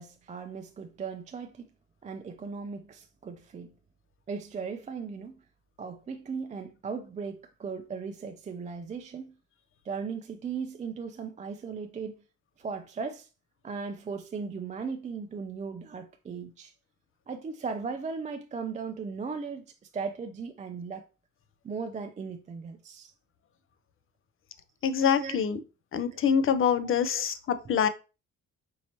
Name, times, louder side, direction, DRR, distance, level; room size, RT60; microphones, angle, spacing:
voice 1, 0.0-1.7 2.0-3.7 4.3-5.4 5.8-9.4 9.8-12.1 12.6-13.3 13.6-16.7 17.3-21.1 21.6-23.1 25.0-25.4 26.1-26.2 26.8-27.4 27.7-27.8, right 5 dB, 25° right, 0.4 m, -37 dB
voice 2, 24.8-25.6 25.9-27.9, left 7 dB, 45° left, 0.5 m, -25 dB
4.5 x 2.9 x 2.9 m
cardioid pair, 90°, 30 cm